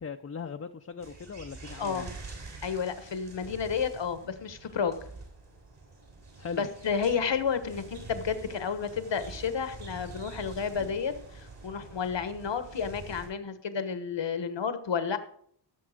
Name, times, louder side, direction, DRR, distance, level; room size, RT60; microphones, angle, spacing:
voice 1, 0.0-2.1 6.4-6.6, left 6 dB, 35° left, 5 dB, 0.6 m, -39 dB
sound 1, 1.0-13.3, right 3 dB, 65° right, 5.3 m, -46 dB
voice 2, 2.6-5.0 6.5-15.2, left 6 dB, 75° left, 10 dB, 1.3 m, -31 dB
17.0 x 7.2 x 5.0 m, 0.63 s
wide cardioid pair, 110°, 44 cm